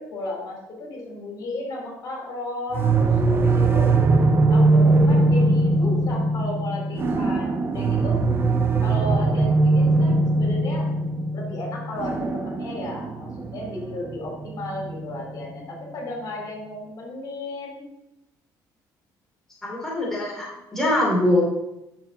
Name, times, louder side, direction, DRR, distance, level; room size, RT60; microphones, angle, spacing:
voice 1, 0.0-3.9 4.5-8.2 8.8-10.9 11.3-17.8, left 1 dB, 55° left, -1 dB, 3.7 m, -34 dB
sound 1, 2.7-15.5, right 2 dB, 30° right, 0.9 m, -21 dB
voice 2, 19.6-21.4, left 1 dB, 5° left, -5 dB, 2.9 m, -23 dB
10.0 x 6.5 x 4.1 m, 0.89 s
cardioid pair, 120°, 7 cm